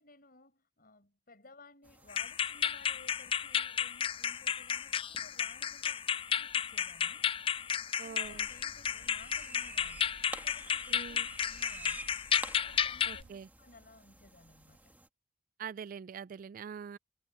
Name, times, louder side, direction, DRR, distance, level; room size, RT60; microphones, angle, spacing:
voice 1, 0.0-6.1 6.3-7.4 8.0-12.1 12.6-15.0, left 3 dB, 55° left, 6.3 m, -58 dB
sound 1, 1.8-15.1, right 2 dB, 10° right, 1.9 m, -52 dB
sound 2, 2.1-13.2, left 8 dB, 30° left, 0.3 m, -33 dB
voice 2, 8.0-8.5 10.9-11.3 13.1-13.5 15.6-17.0, right 7 dB, 50° right, 0.3 m, -44 dB
sound 3, 8.2-13.3, right 3 dB, 75° right, 0.6 m, -57 dB
head